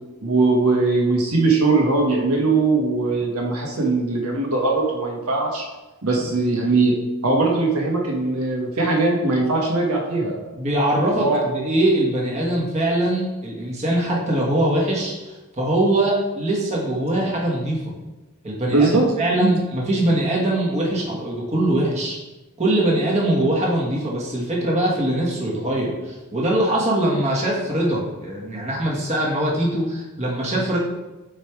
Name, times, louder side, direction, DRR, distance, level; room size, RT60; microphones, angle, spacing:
voice 1, 0.2-5.6 6.0-6.9 7.2-10.4 11.0-11.4 18.7-19.0 19.4-19.5, right 3 dB, 80° right, -1 dB, 1.4 m, -20 dB
voice 2, 10.6-17.9 18.4-18.9 19.2-22.2 22.6-30.8, right 1 dB, 30° right, -3 dB, 1.5 m, -22 dB
8.1 x 3.4 x 4.7 m, 1.1 s
head